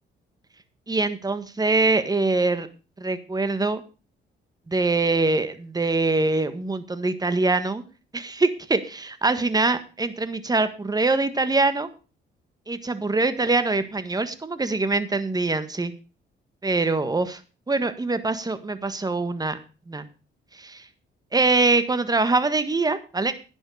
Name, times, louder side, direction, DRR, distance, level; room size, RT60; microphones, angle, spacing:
voice 1, 0.9-2.7 3.0-3.8 4.7-7.8 8.1-11.9 12.7-15.9 16.6-17.4 17.7-19.6 19.9-20.0 20.6-20.8 21.3-23.3, right 3 dB, 20° right, 11 dB, 1.6 m, -23 dB
11.5 x 9.7 x 4.9 m, 0.34 s
cardioid pair, 90°, 20 cm